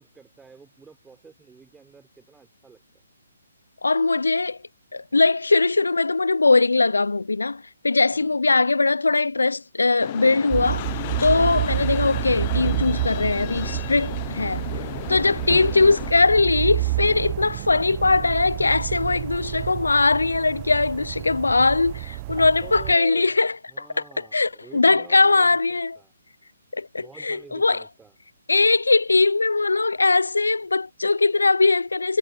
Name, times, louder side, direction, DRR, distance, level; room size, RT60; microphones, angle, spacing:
voice 1, 0.0-2.8 8.1-8.4 22.6-26.1 26.9-28.2, right 5 dB, 5° right, 4.3 m, -48 dB
voice 2, 3.8-4.6 4.9-10.8 11.2-14.6 15.1-23.9 24.3-26.0 26.7-27.8 28.5-32.2, left 3 dB, 75° left, 0.6 m, -20 dB
sound 1, 10.0-16.1, left 17 dB, 30° left, 0.6 m, -34 dB
sound 2, 10.5-22.9, right 20 dB, 30° right, 1.0 m, -29 dB
figure-of-eight pair, 135°, 0 cm